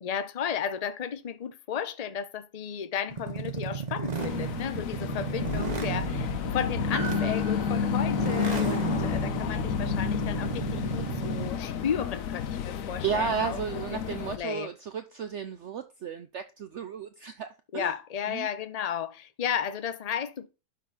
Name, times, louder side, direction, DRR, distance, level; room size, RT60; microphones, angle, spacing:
voice 1, 0.0-13.6 13.9-14.1 14.3-14.7 17.7-20.5, left 8 dB, 40° left, 0.5 m, -34 dB
sound 1, 3.1-11.7, right 4 dB, 30° right, 1.0 m, -33 dB
sound 2, 4.2-14.4, left 8 dB, 65° left, 1.1 m, -31 dB
Piano, 6.9-11.5 11.8-11.9, right 4 dB, 85° right, 2.7 m, -45 dB
voice 2, 13.0-17.9 18.3-18.5, right 7 dB, 60° right, 0.8 m, -33 dB
11.5 x 4.1 x 4.0 m
omnidirectional pair, 1.7 m